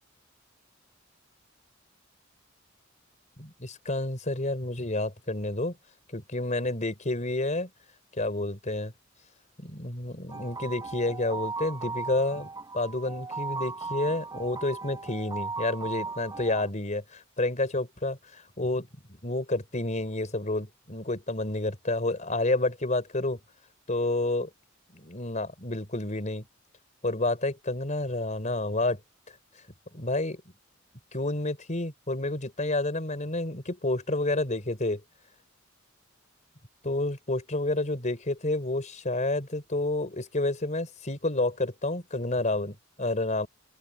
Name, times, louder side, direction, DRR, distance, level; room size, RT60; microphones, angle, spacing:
voice 1, 3.4-5.8 6.1-7.7 8.2-8.9 9.6-12.5 12.7-23.4 23.9-24.5 24.9-26.5 27.0-29.0 29.9-30.4 31.1-35.0 36.8-43.5, left 2 dB, 40° left, 4.2 m, -29 dB
sound 1, 10.3-16.7, right 4 dB, 20° right, 3.7 m, -37 dB
open air
head